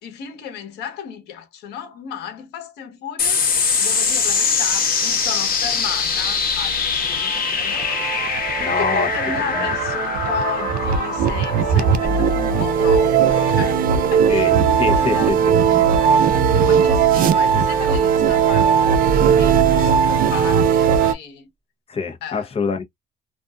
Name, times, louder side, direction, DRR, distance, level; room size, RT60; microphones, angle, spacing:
voice 1, 0.0-3.5 3.8-7.9 8.2-14.5 14.7-16.0 16.5-21.5 22.2-22.6, left 8 dB, 80° left, 1.1 m, -33 dB
sound 1, 3.2-18.0, left 5 dB, 60° left, 1.2 m, -24 dB
sound 2, 6.7-21.1, right 7 dB, 55° right, 0.5 m, -18 dB
voice 2, 8.6-9.1 9.5-9.7 14.3-14.5 14.8-15.6 21.9-22.8, left 5 dB, 35° left, 0.9 m, -24 dB
sound 3, 12.0-13.1 14.5-15.5 16.3-17.4 19.1-20.5, right 3 dB, 25° right, 0.8 m, -28 dB
2.5 x 2.5 x 2.3 m
cardioid pair, 110°, 17 cm